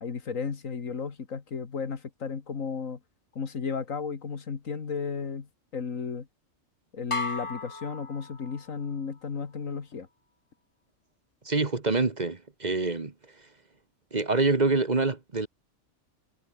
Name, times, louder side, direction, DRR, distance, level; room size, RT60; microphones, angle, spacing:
voice 1, 0.0-3.0 3.4-6.3 6.9-10.1, left 5 dB, 85° left, 2.2 m, -34 dB
sound 1, 7.1-8.9, left 3 dB, 25° left, 1.4 m, -35 dB
voice 2, 11.4-13.1 14.1-15.5, right 3 dB, 35° right, 1.5 m, -26 dB
omnidirectional pair, 1.3 m